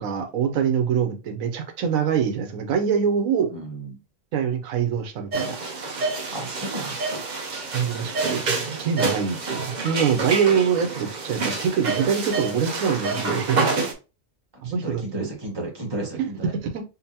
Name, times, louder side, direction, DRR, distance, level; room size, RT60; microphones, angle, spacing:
voice 1, 0.0-3.5 4.3-5.6 7.7-13.6 14.6-15.3 16.1-16.8, right 7 dB, 85° right, 5 dB, 1.1 m, -24 dB
voice 2, 3.5-4.0 6.3-7.3 14.6-16.5, right 1 dB, 20° right, -1 dB, 1.2 m, -33 dB
sound 1, 5.3-13.9, right 3 dB, 45° right, 0.6 m, -28 dB
5.3 x 2.2 x 2.7 m, 0.30 s
omnidirectional pair, 1.4 m